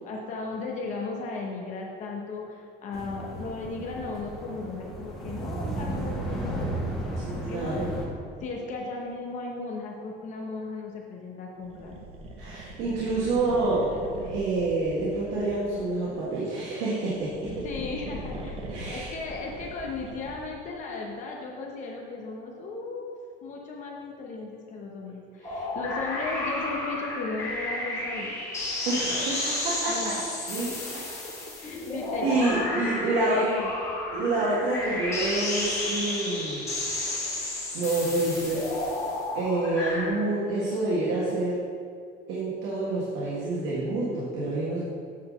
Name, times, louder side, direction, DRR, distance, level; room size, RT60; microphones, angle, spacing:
voice 1, 0.0-6.8 7.0-7.8 8.4-12.0 17.6-23.2 23.4-28.5 29.9-30.2 30.5-30.6 31.2-31.3 31.6-32.4 33.0-33.7, left 3 dB, 40° left, -1 dB, 0.9 m, -36 dB
sound 1, 2.9-8.1, right 1 dB, ahead, 1.4 m, -34 dB
voice 2, 7.3-7.9 12.4-17.3 18.7-19.1 25.4-25.6 28.9-29.9 30.5-30.7 32.2-33.5 34.1-36.6 37.0-37.2 37.7-38.6 39.4-41.6 42.3-44.8, right 2 dB, 90° right, -7 dB, 1.7 m, -28 dB
sound 2, 11.6-16.1 17.0-20.7, right 2 dB, 30° right, 0.7 m, -41 dB
sound 3, 25.4-40.1, left 2 dB, 15° left, 2.0 m, -32 dB
8.4 x 4.0 x 6.4 m, 2.3 s
cardioid pair, 180°, 18 cm